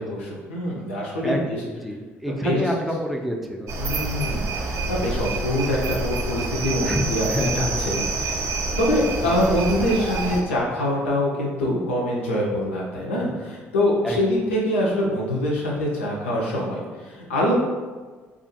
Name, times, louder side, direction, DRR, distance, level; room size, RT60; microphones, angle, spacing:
voice 1, 0.0-1.6 2.3-2.6 3.8-7.3 7.5-8.4 8.8-17.5, left 1 dB, 85° left, -3 dB, 0.5 m, -24 dB
voice 2, 1.2-3.7 6.8-8.2 8.9-9.6 14.0-14.2, equal, ahead, 1 dB, 0.5 m, -28 dB
sound 1, 3.7-10.4, right 3 dB, 55° right, 0.4 m, -27 dB
2.4 x 2.4 x 2.7 m, 1.4 s
hypercardioid pair, 50°, 6 cm